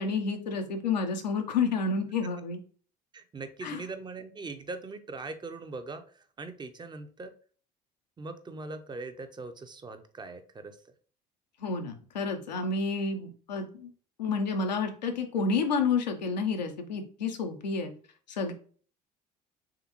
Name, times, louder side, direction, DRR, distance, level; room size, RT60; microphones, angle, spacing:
voice 1, 0.0-2.6 3.6-3.8 11.6-13.9 14.2-17.9 18.3-18.5, left 4 dB, 85° left, 4 dB, 0.6 m, -30 dB
voice 2, 3.1-7.3 8.2-10.8, right 3 dB, 20° right, 9 dB, 0.6 m, -41 dB
3.6 x 3.4 x 2.9 m, 0.43 s
hypercardioid pair, 60°, 21 cm